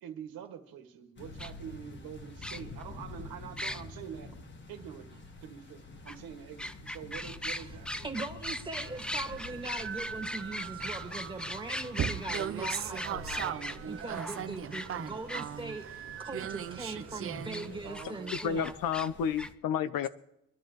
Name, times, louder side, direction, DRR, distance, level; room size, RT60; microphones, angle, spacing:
voice 1, 0.0-4.3 4.7-8.1 17.8-18.4, right 8 dB, 80° right, 2.0 m, -45 dB
sound 1, 1.2-19.5, left 2 dB, 30° left, 1.6 m, -49 dB
sound 2, 1.4-1.5 2.4-2.8 3.6-3.8 6.1-6.2 6.6-15.4 17.5-17.7 17.9-19.1 19.4-19.5, left 1 dB, 5° left, 0.4 m, -38 dB
voice 2, 8.0-18.7, right 2 dB, 15° right, 2.1 m, -41 dB
sound 3, 8.8-17.9, right 9 dB, 40° right, 0.6 m, -39 dB
voice 3, 18.4-20.1, left 7 dB, 70° left, 0.9 m, -31 dB
24.5 x 13.0 x 3.2 m
cardioid pair, 140°, 35 cm